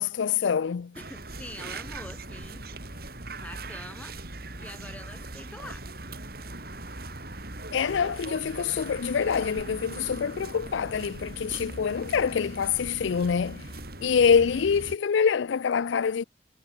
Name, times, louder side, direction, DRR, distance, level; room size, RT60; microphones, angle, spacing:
voice 1, 0.0-0.9 7.7-13.7 14.0-16.2, left 6 dB, 75° left, 0.4 m, -25 dB
sound 1, 0.9-15.0, right 2 dB, 50° right, 4.8 m, -40 dB
voice 2, 1.0-2.7 3.4-4.1 4.6-5.9, left 1 dB, 5° left, 2.4 m, -44 dB
head